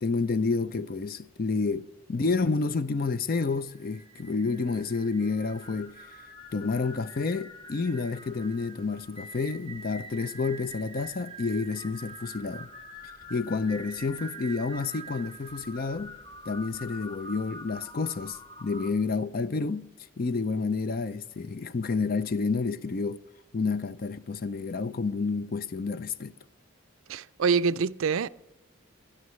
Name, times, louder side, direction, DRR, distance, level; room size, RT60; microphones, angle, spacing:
voice 1, 0.0-6.0 6.5-12.7 13.3-16.2 16.5-19.9 20.2-23.2 23.5-26.3, left 4 dB, 45° left, 0.4 m, -29 dB
sound 1, 3.2-18.9, right 1 dB, 25° left, 1.5 m, -45 dB
voice 2, 27.1-28.3, right 5 dB, 75° right, 0.4 m, -25 dB
20.5 x 12.0 x 3.1 m
head